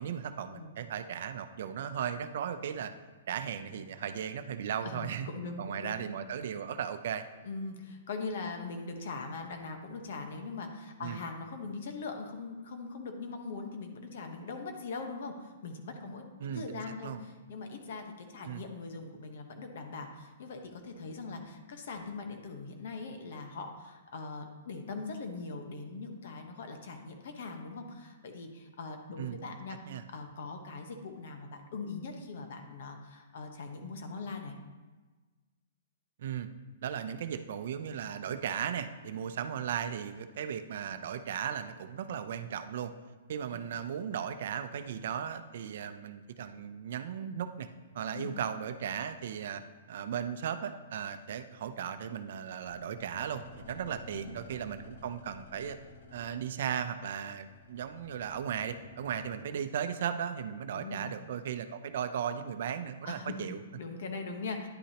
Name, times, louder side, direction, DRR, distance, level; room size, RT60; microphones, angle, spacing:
voice 1, 0.0-2.9 3.3-5.3 5.6-7.2 11.0-11.2 16.4-17.2 18.5-18.6 29.2-29.4 29.9-30.0 36.2-36.5 36.8-42.9 43.3-47.7 47.9-49.6 49.9-55.8 56.1-63.6, right 8 dB, 60° right, 10 dB, 0.6 m, -36 dB
voice 2, 4.8-6.0 7.4-29.8 30.1-34.5 43.5-43.7 48.1-48.3 54.1-54.3 60.7-61.1 63.0-64.7, left 4 dB, 60° left, 4 dB, 1.2 m, -41 dB
sound 1, 52.7-59.4, left 2 dB, 80° left, 1.3 m, -53 dB
10.0 x 8.4 x 2.9 m, 1.3 s
hypercardioid pair, 155°, 0 cm